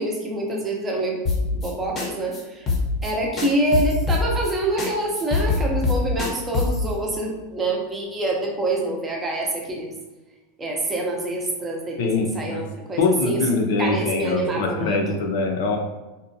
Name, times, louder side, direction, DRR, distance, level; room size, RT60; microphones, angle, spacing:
voice 1, 0.0-2.7 3.0-9.9 10.6-15.2, right 2 dB, 20° right, -1 dB, 0.6 m, -26 dB
sound 1, 1.3-1.7 2.0-2.1 2.3-2.4 2.7-3.1 3.4-4.5 4.8-4.9 5.1-6.8, left 4 dB, 25° left, 0.7 m, -23 dB
voice 2, 12.0-12.6 13.0-15.8, left 3 dB, 70° left, 3 dB, 0.5 m, -23 dB
2.6 x 2.2 x 2.6 m, 1.1 s
supercardioid pair, 135°, 0 cm